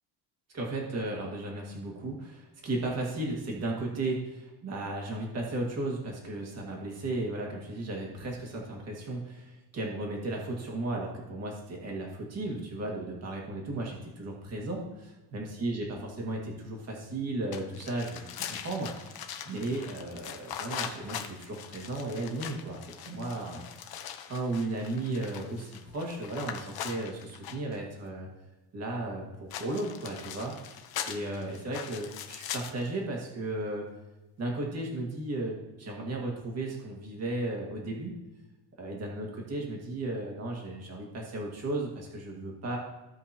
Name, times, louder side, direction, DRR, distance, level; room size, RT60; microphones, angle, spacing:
voice 1, 0.5-14.8 15.3-19.2 19.5-23.7 24.3-28.3 28.7-33.9 34.4-38.1 38.8-42.8, right 2 dB, 35° right, -1 dB, 2.0 m, -35 dB
sound 1, 17.5-27.8 29.5-32.9, left 9 dB, 55° left, 0.9 m, -41 dB
15.5 x 5.3 x 2.9 m, 1.1 s
cardioid pair, 165°, 43 cm